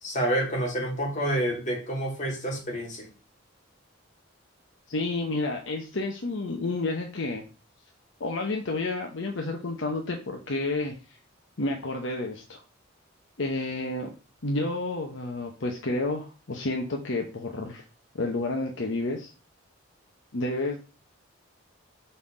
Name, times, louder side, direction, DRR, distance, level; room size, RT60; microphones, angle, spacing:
voice 1, 0.0-3.1, right 1 dB, 35° left, -1 dB, 2.3 m, -28 dB
voice 2, 4.9-7.4 8.2-11.2 11.6-12.6 13.4-14.1 14.4-17.8 18.1-19.3 20.3-20.8, left 2 dB, 65° left, 2 dB, 0.9 m, -30 dB
5.6 x 4.1 x 5.0 m, 0.34 s
head